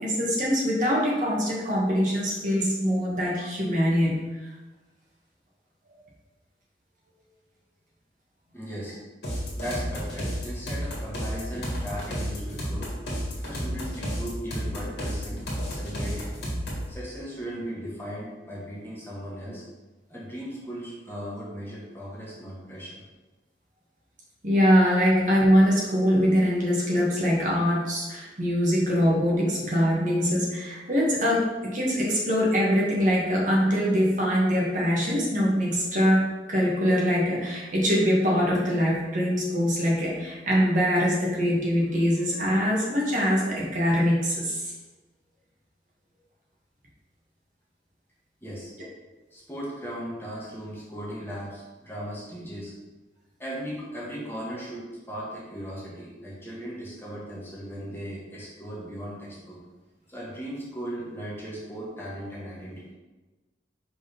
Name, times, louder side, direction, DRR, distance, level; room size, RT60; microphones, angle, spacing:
voice 1, 0.0-4.5 5.9-6.0 24.4-44.7, equal, 45° right, -5 dB, 1.5 m, -23 dB
voice 2, 8.5-9.0 9.6-12.9 13.4-16.3 16.9-19.6 20.1-23.0 48.4-48.7 49.3-52.7 53.4-59.6 60.1-62.9, equal, 15° left, -6 dB, 1.6 m, -37 dB
sound 1, 9.2-16.9, equal, 65° left, 2.0 m, -31 dB
5.1 x 3.8 x 5.2 m, 1.2 s
head